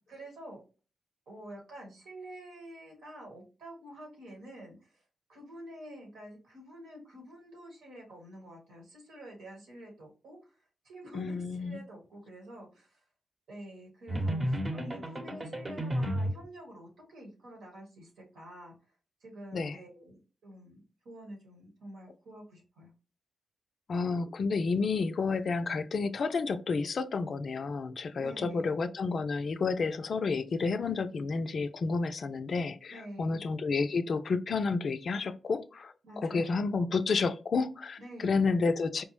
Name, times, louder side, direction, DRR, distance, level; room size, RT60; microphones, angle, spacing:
voice 1, 0.1-0.6 1.3-5.0 5.3-10.4 10.8-13.0 13.5-18.7 19.2-20.1 20.4-22.9 28.2-28.8 32.9-33.4 36.0-36.6 38.0-38.5, right 1 dB, 80° right, 1.3 m, -48 dB
voice 2, 11.1-11.8 19.5-19.8 23.9-39.0, left 4 dB, 60° left, 0.3 m, -30 dB
sound 1, 14.1-16.4, equal, 35° right, 0.9 m, -32 dB
4.4 x 2.0 x 3.0 m
supercardioid pair, 40°, 0 cm